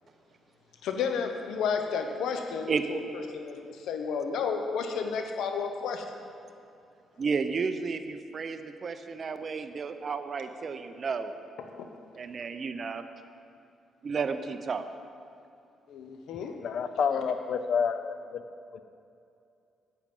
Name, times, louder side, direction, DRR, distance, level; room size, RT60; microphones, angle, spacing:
voice 1, 0.8-6.1 11.8-11.9 15.9-16.5 17.1-17.2, left 6 dB, 80° left, 5 dB, 0.9 m, -32 dB
voice 2, 7.2-11.3 12.1-13.0 14.0-14.8, right 5 dB, 45° right, 10 dB, 0.6 m, -32 dB
voice 3, 16.6-18.4 18.7-18.8, left 6 dB, 65° left, 10 dB, 0.5 m, -29 dB
8.7 x 8.0 x 5.4 m, 2.6 s
cardioid pair, 90°, 0 cm